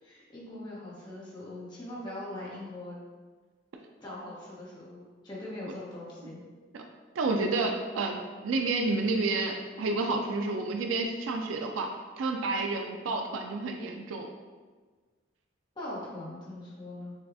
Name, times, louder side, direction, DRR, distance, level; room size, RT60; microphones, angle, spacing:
voice 1, 0.0-3.0 4.0-6.4 15.8-17.1, left 1 dB, 20° left, -7 dB, 1.0 m, -41 dB
voice 2, 7.2-11.9 12.2-14.3, right 3 dB, 85° right, 3 dB, 0.4 m, -30 dB
5.7 x 2.3 x 2.6 m, 1.4 s
head